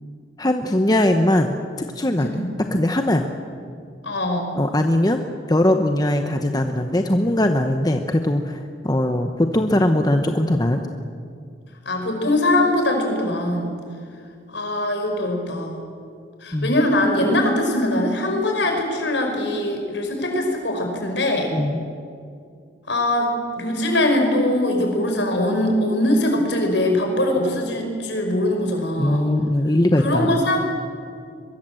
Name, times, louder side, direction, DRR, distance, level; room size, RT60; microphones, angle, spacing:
voice 1, 0.4-2.4 2.7-3.3 4.5-5.2 5.5-10.8 16.5-16.8 21.5-21.8 29.0-30.4, left 1 dB, 20° left, 6 dB, 0.9 m, -20 dB
voice 2, 2.2-2.5 4.0-4.6 11.9-13.8 14.5-15.8 16.4-21.5 22.9-29.2 30.0-30.7, left 1 dB, 80° left, 3 dB, 5.5 m, -22 dB
23.0 x 22.5 x 7.8 m, 2.3 s
head